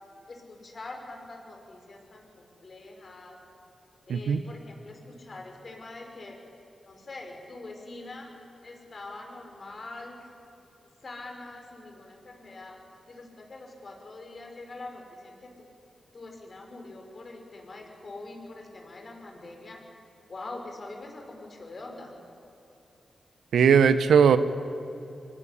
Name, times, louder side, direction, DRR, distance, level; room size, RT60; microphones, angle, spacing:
voice 1, 0.0-3.4 4.1-6.4 6.8-8.3 8.6-10.3 11.0-12.8 13.1-15.7 16.1-19.8 20.3-22.1, left 2 dB, 55° left, 2 dB, 5.5 m, -44 dB
voice 2, 4.1-4.4 23.5-24.4, right 7 dB, 85° right, 12 dB, 0.9 m, -19 dB
24.0 x 17.5 x 10.0 m, 2.9 s
supercardioid pair, 45°, 0 cm